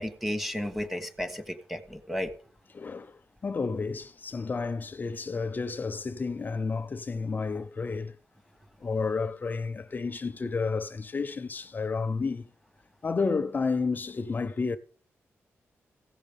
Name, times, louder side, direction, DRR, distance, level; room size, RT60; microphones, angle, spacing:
voice 1, 0.0-2.3, equal, 5° right, 1.3 m, -33 dB
voice 2, 2.7-8.2 8.8-12.5 13.0-14.8, left 4 dB, 35° left, 0.6 m, -31 dB
15.5 x 6.5 x 5.3 m
wide cardioid pair, 110°, 5 cm